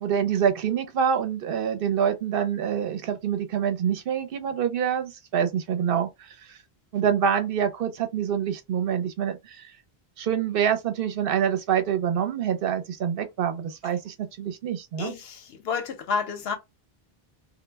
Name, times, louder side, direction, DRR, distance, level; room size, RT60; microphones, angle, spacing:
voice 1, 0.0-6.6 6.9-9.7 10.2-15.1, right 8 dB, 70° right, 0.7 m, -26 dB
voice 2, 15.0-16.6, left 5 dB, 75° left, 0.9 m, -30 dB
2.1 x 2.0 x 3.2 m
omnidirectional pair, 1.0 m